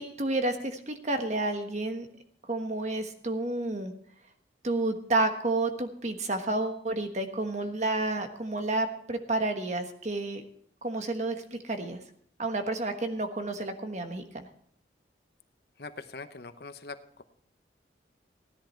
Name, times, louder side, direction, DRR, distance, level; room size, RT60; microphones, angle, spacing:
voice 1, 0.0-2.1 2.5-3.9 4.6-10.4 10.8-12.0 12.4-14.5, right 2 dB, 40° right, 6 dB, 1.3 m, -30 dB
voice 2, 15.8-17.2, left 3 dB, 60° left, 10 dB, 0.8 m, -42 dB
16.0 x 10.5 x 4.4 m, 0.63 s
head